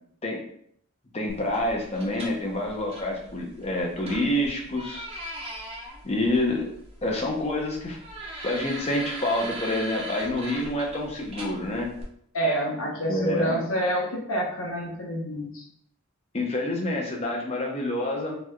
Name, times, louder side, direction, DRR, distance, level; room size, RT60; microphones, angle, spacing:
voice 1, 1.1-5.1 6.0-6.7 7.0-8.0 8.4-11.9 13.1-13.6 16.3-18.4, left 1 dB, 30° left, -1 dB, 0.7 m, -27 dB
sound 1, 1.3-12.0, right 1 dB, 25° right, 0.7 m, -40 dB
voice 2, 12.3-15.6, equal, 70° left, -3 dB, 0.9 m, -27 dB
3.9 x 3.1 x 2.3 m, 0.68 s
head